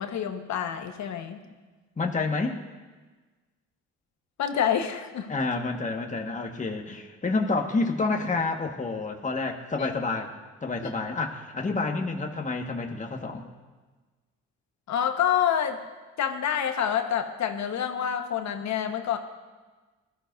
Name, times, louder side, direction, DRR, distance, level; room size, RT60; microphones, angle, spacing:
voice 1, 0.0-1.4 4.4-5.3 9.8-9.9 10.8-10.9 14.9-15.8 16.2-19.2, left 9 dB, 65° left, 6 dB, 1.3 m, -27 dB
voice 2, 2.0-2.6 5.3-10.3 10.6-13.4, left 3 dB, 25° left, 2 dB, 1.6 m, -29 dB
20.0 x 13.5 x 2.7 m, 1.3 s
supercardioid pair, 65°, 31 cm